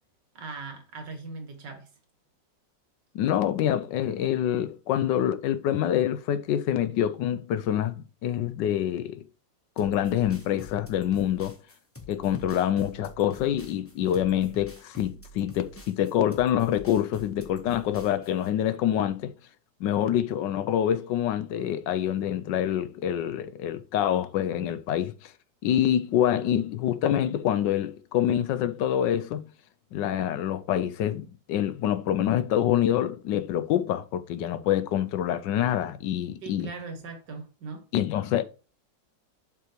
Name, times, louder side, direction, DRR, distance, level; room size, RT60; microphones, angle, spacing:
voice 1, 0.4-1.9 36.4-37.8, right 3 dB, 65° right, 2.2 m, -39 dB
voice 2, 3.1-9.2 9.8-11.5 12.1-19.3 19.8-25.3 25.6-29.4 29.9-36.7 37.9-38.4, left 10 dB, 75° left, 1.2 m, -26 dB
sound 1, 9.8-18.5, left 2 dB, 10° left, 0.8 m, -46 dB
7.2 x 5.9 x 3.1 m
omnidirectional pair, 2.0 m